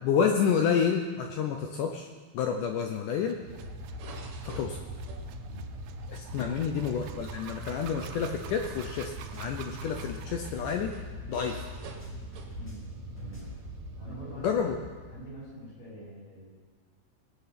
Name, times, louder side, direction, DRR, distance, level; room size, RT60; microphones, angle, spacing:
voice 1, 0.0-2.1 2.3-3.4 4.4-4.8 6.1-10.9 11.3-11.7 14.4-14.8, left 7 dB, 85° left, 4 dB, 1.8 m, -29 dB
sound 1, 2.8-10.7, right 9 dB, 85° right, 2.8 m, -49 dB
sound 2, 3.4-15.5, equal, 60° right, 2.1 m, -41 dB
sound 3, 8.3-11.6 11.8-13.7, right 1 dB, 10° left, 0.8 m, -53 dB
voice 2, 12.5-12.9 13.1-13.5 14.0-14.7 15.1-16.5, right 1 dB, 55° left, -8 dB, 6.8 m, -44 dB
19.5 x 8.8 x 5.9 m, 1.5 s
omnidirectional pair, 4.6 m